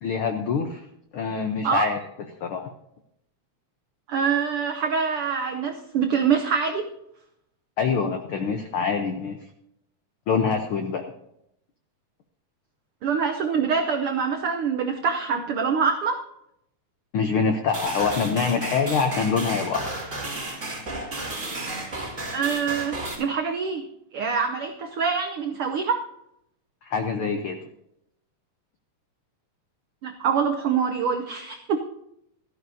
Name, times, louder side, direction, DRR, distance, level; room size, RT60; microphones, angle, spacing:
voice 1, 0.0-0.8 1.1-2.0 2.4-2.7 7.8-9.4 10.3-11.0 17.1-19.9 26.8-27.6, left 5 dB, 80° left, 6 dB, 1.2 m, -25 dB
voice 2, 4.1-6.9 13.0-16.2 22.3-23.9 24.1-26.0 30.0-31.8, right 6 dB, 85° right, 5 dB, 1.2 m, -25 dB
sound 1, 17.7-23.1, right 2 dB, 25° right, 2.2 m, -33 dB
17.0 x 13.5 x 2.7 m, 0.78 s
omnidirectional pair, 3.5 m